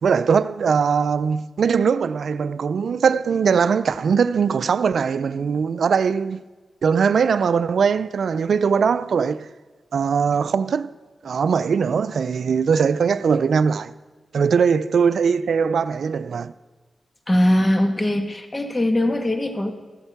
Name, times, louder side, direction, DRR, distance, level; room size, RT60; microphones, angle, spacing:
voice 1, 0.0-6.4 6.8-9.5 9.9-10.9 11.2-13.9 14.3-16.5, right 6 dB, 75° right, 0.4 m, -20 dB
voice 2, 17.3-19.7, left 1 dB, 25° left, 1.6 m, -20 dB
14.5 x 7.9 x 5.9 m
cardioid pair, 50°, 0 cm